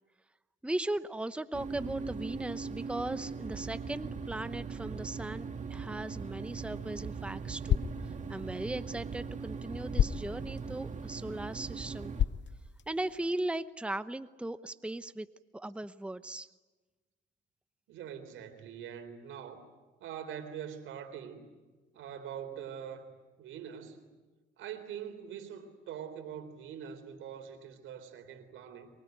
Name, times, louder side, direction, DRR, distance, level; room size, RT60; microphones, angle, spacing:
voice 1, 0.6-7.8 8.3-12.1 12.9-15.3 15.5-16.5, right 1 dB, 5° right, 12 dB, 0.9 m, -38 dB
sound 1, 1.5-12.2, right 5 dB, 40° right, 2.1 m, -40 dB
sound 2, 6.4-13.4, left 10 dB, 65° left, 0.8 m, -36 dB
voice 2, 17.9-19.7 20.0-21.5 21.9-23.1 23.4-24.1 24.6-28.9, right 8 dB, 85° right, 8 dB, 3.9 m, -43 dB
24.0 x 23.5 x 9.4 m, 1.3 s
cardioid pair, 90°, 20 cm